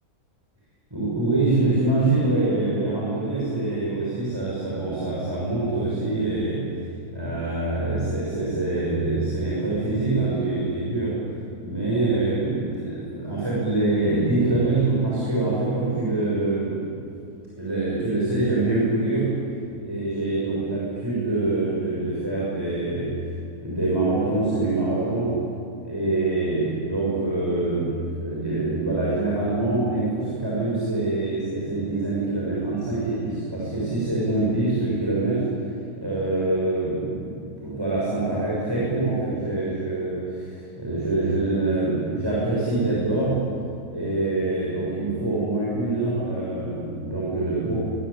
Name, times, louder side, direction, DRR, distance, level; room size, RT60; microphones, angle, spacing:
voice 1, 0.9-6.7 7.1-11.2 11.6-16.8 17.6-19.4 19.8-23.2 23.6-25.3 25.8-35.5 36.0-43.5 43.9-47.8, right 2 dB, 15° right, -7 dB, 6.7 m, -25 dB
25.0 x 24.0 x 8.7 m, 2.6 s
omnidirectional pair, 1.6 m